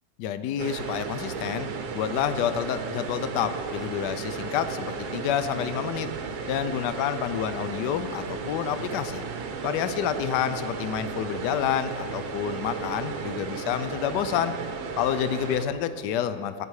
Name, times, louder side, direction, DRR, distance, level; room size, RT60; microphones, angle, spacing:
voice 1, 0.2-1.7 1.9-6.1 6.5-9.2 9.6-14.5 15.0-16.7, left 9 dB, 80° left, 11 dB, 1.2 m, -28 dB
sound 1, 0.6-15.7, right 5 dB, 70° right, 1.4 m, -34 dB
15.0 x 8.0 x 4.8 m, 2.4 s
omnidirectional pair, 1.9 m